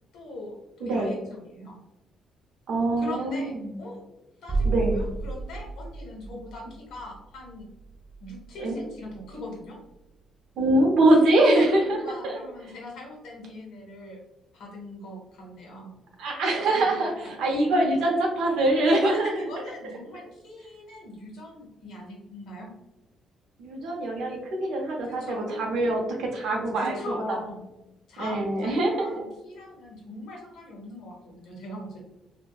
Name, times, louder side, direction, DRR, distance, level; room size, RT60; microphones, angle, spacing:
voice 1, 0.1-1.8 3.0-4.0 4.4-7.7 8.2-9.8 11.3-14.2 14.5-15.9 16.6-17.3 19.0-22.7 25.0-25.6 26.8-27.6 28.1-32.0, left 1 dB, 75° left, -1 dB, 0.9 m, -40 dB
voice 2, 0.8-1.2 2.7-3.7 4.6-5.0 8.6-8.8 10.6-12.0 12.2-12.4 16.2-19.3 23.6-27.0 28.2-29.3, right 1 dB, 75° right, 1 dB, 0.6 m, -23 dB
sound 1, 4.5-10.2 10.5-10.6, right 3 dB, 30° right, 0.3 m, -33 dB
2.6 x 2.1 x 2.3 m, 0.94 s
cardioid pair, 105°, 0 cm